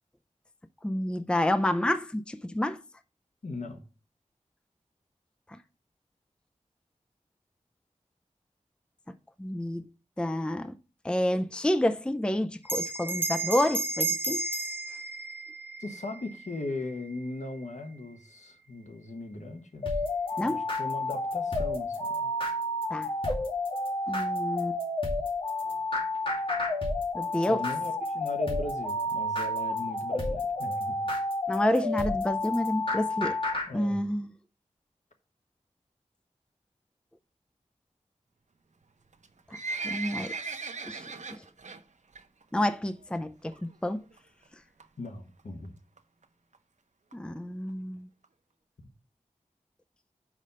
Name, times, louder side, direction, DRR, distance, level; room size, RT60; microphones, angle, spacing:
voice 1, 0.8-2.8 9.4-9.8 10.2-10.7 11.0-14.4 20.4-20.6 22.9-23.1 24.1-24.8 27.1-27.6 31.5-33.4 33.7-34.3 39.8-40.3 40.9-41.1 42.5-44.0 47.1-48.1, left 1 dB, 10° left, 0.5 m, -29 dB
voice 2, 3.4-3.8 15.8-19.9 20.4-22.3 27.4-31.0 33.7-34.1 45.0-45.7, left 2 dB, 70° left, 1.3 m, -38 dB
Bell, 12.6-17.5, right 3 dB, 15° right, 1.1 m, -33 dB
sound 1, 19.8-33.7, left 2 dB, 45° left, 2.4 m, -30 dB
Livestock farm animals working animals, 39.1-41.8 42.1-42.4 42.7-42.8 43.5-43.6 43.9-44.0 44.2-44.3 44.8-45.1 45.6-45.7 46.0-46.1 46.2-46.3 46.5-46.6 47.1-47.2 47.7-47.8 48.2-48.3, right 3 dB, 70° right, 0.7 m, -37 dB
5.4 x 5.0 x 6.6 m
wide cardioid pair, 65°, 13 cm